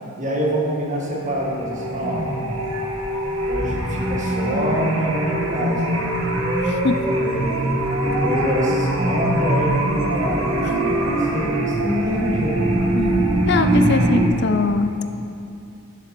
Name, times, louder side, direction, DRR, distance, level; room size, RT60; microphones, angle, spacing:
voice 1, 0.2-2.6 3.5-5.8 7.1-7.6 8.0-12.6, equal, 35° right, -3 dB, 1.8 m, -25 dB
sound 1, 0.9-14.3, right 1 dB, 70° right, 1.3 m, -22 dB
voice 2, 12.9-15.0, left 3 dB, 50° left, 8 dB, 0.5 m, -22 dB
11.5 x 6.8 x 5.9 m, 2.7 s
head